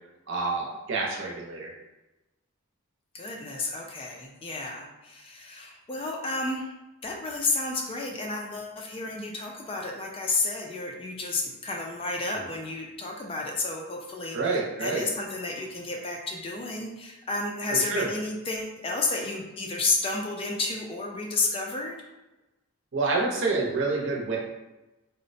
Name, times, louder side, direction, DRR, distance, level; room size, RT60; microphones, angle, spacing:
voice 1, 0.3-1.7 12.3-12.4 14.3-15.1 17.7-18.1 22.9-24.4, right 3 dB, 55° right, -3 dB, 0.7 m, -28 dB
voice 2, 3.1-6.7 7.0-21.9, left 3 dB, 25° left, 0 dB, 0.3 m, -31 dB
3.9 x 2.1 x 2.6 m, 1.0 s
head